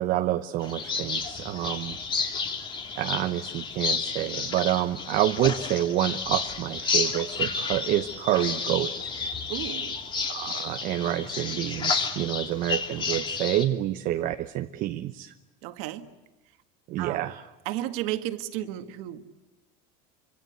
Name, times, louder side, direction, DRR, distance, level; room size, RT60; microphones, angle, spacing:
voice 1, 0.0-2.0 3.0-8.9 10.3-15.3 16.9-17.4, right 13 dB, 45° right, 7 dB, 0.9 m, -28 dB
sound 1, 0.6-13.6, left 4 dB, 25° left, 2.6 m, -31 dB
voice 2, 9.5-10.0 15.6-16.1 17.0-17.2 17.7-19.2, right 14 dB, 65° right, 7 dB, 2.0 m, -33 dB
27.0 x 25.5 x 8.2 m, 1.0 s
cardioid pair, 155°, 20 cm